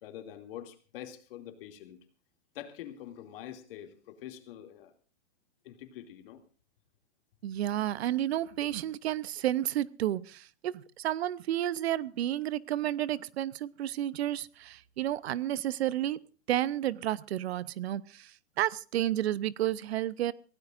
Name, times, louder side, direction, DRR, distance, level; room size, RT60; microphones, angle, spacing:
voice 1, 0.0-2.0 2.5-4.9 5.6-6.4, left 11 dB, 55° left, 6 dB, 2.6 m, -45 dB
voice 2, 7.4-16.2 16.5-20.3, right 13 dB, 70° right, 19 dB, 0.8 m, -31 dB
25.0 x 16.5 x 2.5 m, 0.37 s
hypercardioid pair, 135°, 34 cm